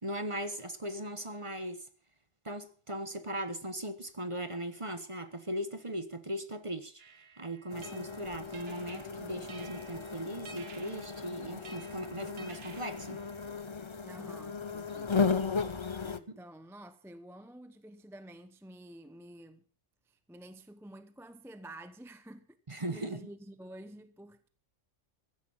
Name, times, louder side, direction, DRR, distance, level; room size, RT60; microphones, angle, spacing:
voice 1, 0.0-1.9 2.4-7.0 7.4-13.2 16.3-16.4 22.7-23.3, right 1 dB, 25° right, 1.2 m, -38 dB
sound 1, 7.0-13.6, right 5 dB, 55° right, 1.4 m, -54 dB
sound 2, 7.7-16.2, left 5 dB, 30° left, 0.6 m, -36 dB
voice 2, 14.0-15.2 16.0-19.6 20.1-22.6 22.9-24.5, right 1 dB, ahead, 0.8 m, -50 dB
15.0 x 11.5 x 5.7 m
omnidirectional pair, 1.3 m